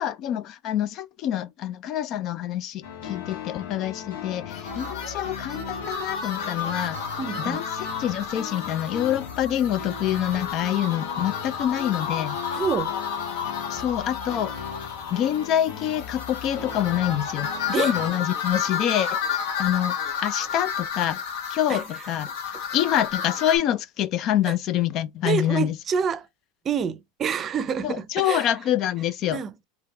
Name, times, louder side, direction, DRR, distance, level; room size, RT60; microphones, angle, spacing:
voice 1, 0.0-7.0 7.4-7.6 8.0-12.4 13.7-14.5 15.1-19.2 19.6-21.2 21.5-22.3 22.7-25.8 27.8-29.4, left 11 dB, 45° left, 0.4 m, -26 dB
sound 1, 2.8-18.1, left 7 dB, 85° left, 1.5 m, -38 dB
sound 2, 4.5-23.6, left 6 dB, 70° left, 1.4 m, -32 dB
voice 2, 7.2-7.6 12.5-12.9 17.7-17.9 21.7-21.8 24.5-24.6 25.2-26.3 26.6-28.5 29.3-29.6, right 7 dB, 30° right, 0.6 m, -27 dB
3.3 x 2.9 x 3.2 m
hypercardioid pair, 110°, 0 cm